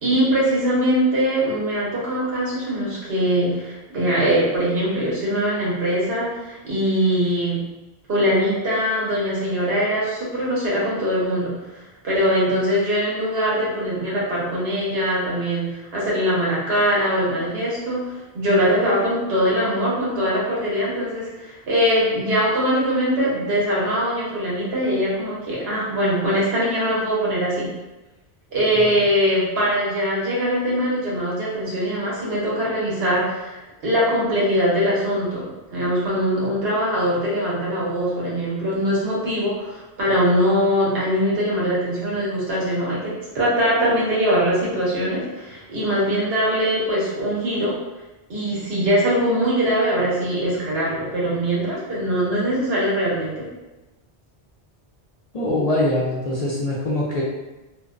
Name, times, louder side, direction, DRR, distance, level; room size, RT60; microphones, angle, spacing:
voice 1, 0.0-7.6 8.1-11.5 12.0-27.7 28.5-33.6 33.8-47.8 48.3-53.5, equal, 80° right, -6 dB, 1.1 m, -22 dB
voice 2, 55.3-57.2, left 1 dB, 50° left, -7 dB, 0.5 m, -23 dB
2.5 x 2.1 x 2.4 m, 1.1 s
omnidirectional pair, 1.0 m